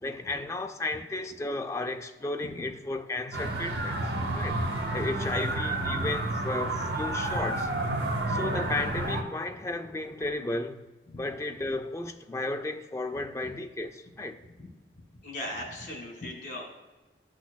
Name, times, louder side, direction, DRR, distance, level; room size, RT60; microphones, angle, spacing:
voice 1, 0.0-4.6 4.9-7.7 8.3-10.8 11.2-14.4, left 2 dB, 15° left, 0.4 m, -34 dB
sound 1, 3.3-9.2, right 2 dB, 70° right, 0.9 m, -30 dB
voice 2, 8.1-8.6 11.1-11.2 14.6-14.7 15.2-16.7, left 1 dB, 45° left, 2.0 m, -39 dB
13.0 x 6.2 x 2.3 m
head